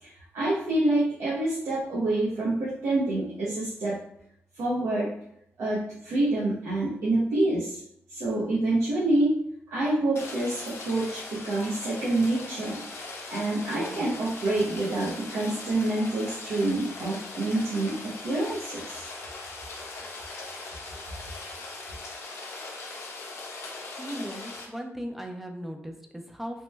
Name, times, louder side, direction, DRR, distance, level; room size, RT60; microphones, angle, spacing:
voice 1, 0.0-4.0 4.5-5.1 5.6-7.8 8.1-9.4 9.7-12.8 13.3-19.1, right 2 dB, 90° right, -7 dB, 0.7 m, -27 dB
Rain, 10.1-24.7, left 3 dB, 65° left, 0.5 m, -40 dB
voice 2, 24.0-26.6, equal, 5° right, 3 dB, 0.4 m, -37 dB
3.0 x 2.1 x 3.2 m, 0.72 s
wide cardioid pair, 135°, 5 cm